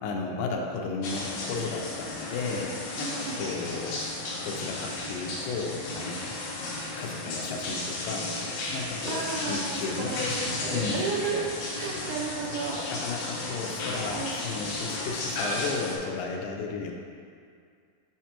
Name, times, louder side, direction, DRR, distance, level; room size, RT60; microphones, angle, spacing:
voice 1, 0.0-4.0 4.4-6.4 7.0-8.3 8.7-10.1 10.7-11.1 12.9-16.9, left 4 dB, 80° left, 1 dB, 2.3 m, -34 dB
sound 1, 1.0-16.0, left 2 dB, 65° left, 1.9 m, -34 dB
voice 2, 3.0-3.4 9.0-12.9 14.1-14.4, right 4 dB, 75° right, -2 dB, 2.3 m, -33 dB
8.3 x 5.0 x 2.9 m, 2.2 s
omnidirectional pair, 4.0 m